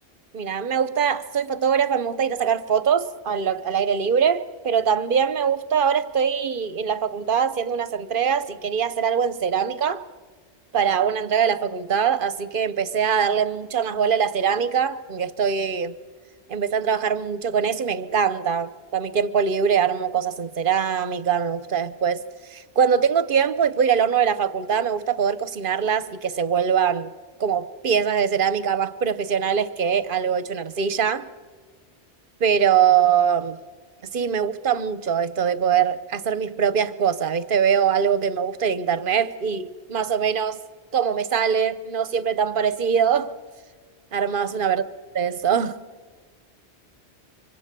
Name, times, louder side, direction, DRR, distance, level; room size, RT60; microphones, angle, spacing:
voice 1, 0.3-10.1 10.7-15.9 16.5-22.2 22.5-27.1 27.4-31.3 32.4-33.6 34.1-40.6 40.9-43.3 44.1-44.8 45.2-45.8, right 7 dB, 50° right, 1.0 m, -22 dB
25.5 x 24.5 x 6.8 m
omnidirectional pair, 1.2 m